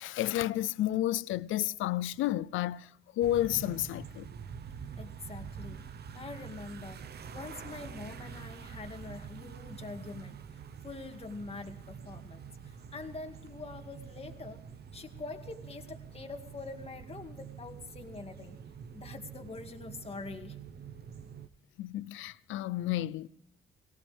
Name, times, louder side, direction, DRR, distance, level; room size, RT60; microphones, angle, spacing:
voice 1, 0.0-2.9 3.2-4.3 21.8-23.3, left 14 dB, 80° left, 0.6 m, -31 dB
sound 1, 3.2-21.5, right 7 dB, 55° right, 1.0 m, -46 dB
voice 2, 5.0-5.8 6.1-14.6 14.9-18.6 18.9-20.6, left 3 dB, 30° left, 2.2 m, -45 dB
18.0 x 18.0 x 3.5 m
cardioid pair, 90°, 20 cm